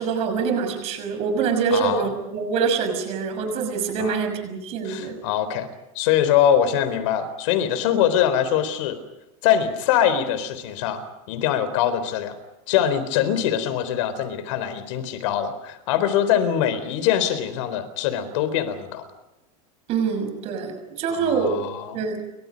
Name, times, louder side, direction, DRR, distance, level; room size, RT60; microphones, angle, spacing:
voice 1, 0.0-5.2 19.9-21.6 21.9-22.2, right 5 dB, 35° right, 6 dB, 6.1 m, -25 dB
voice 2, 1.7-2.1 4.0-4.2 4.8-5.7 5.9-9.0 9.4-12.4 12.7-19.0 21.1-22.0, left 9 dB, 60° left, 12 dB, 4.0 m, -23 dB
29.5 x 25.0 x 5.3 m, 0.94 s
supercardioid pair, 170°, 18 cm